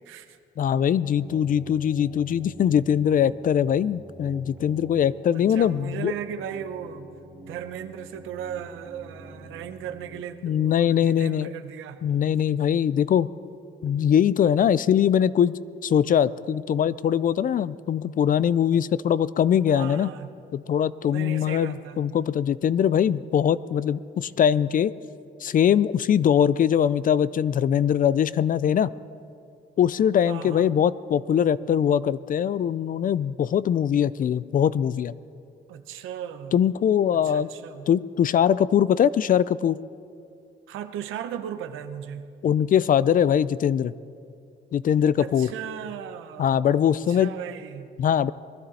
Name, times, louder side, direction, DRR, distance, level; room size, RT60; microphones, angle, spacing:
voice 1, 0.1-0.4 5.3-7.1 7.4-12.0 19.7-20.3 21.1-22.0 30.3-30.7 35.7-36.6 37.2-37.9 40.7-42.3 45.2-46.6 47.1-47.9, right 9 dB, 85° right, 8 dB, 0.9 m, -37 dB
voice 2, 0.6-6.1 10.4-11.5 12.0-13.3 13.8-15.5 15.8-20.1 20.5-24.9 25.4-28.9 29.8-35.1 36.5-37.5 37.9-39.8 42.4-43.9 44.7-45.5 46.4-47.3 48.0-48.3, left 9 dB, 45° left, 18 dB, 0.4 m, -22 dB
sound 1, 1.1-10.2, right 2 dB, 5° right, 2.2 m, -46 dB
21.0 x 12.5 x 4.2 m, 2.5 s
cardioid pair, 90°, 20 cm